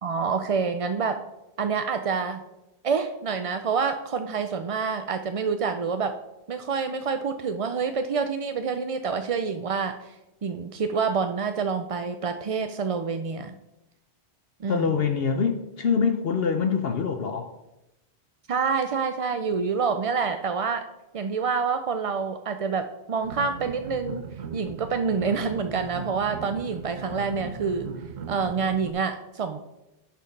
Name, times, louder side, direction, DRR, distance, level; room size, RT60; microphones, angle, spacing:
voice 1, 0.0-1.2 1.6-2.4 2.8-6.1 6.5-10.1 10.4-13.5 14.6-14.9 18.5-20.9 21.1-24.2 24.5-27.9 28.3-29.6, right 5 dB, 50° right, 8 dB, 0.4 m, -27 dB
voice 2, 14.7-17.5, left 6 dB, 60° left, 6 dB, 0.9 m, -25 dB
sound 1, 23.2-28.9, right 6 dB, 75° right, 1.0 m, -38 dB
11.0 x 4.5 x 5.3 m, 0.92 s
omnidirectional pair, 1.2 m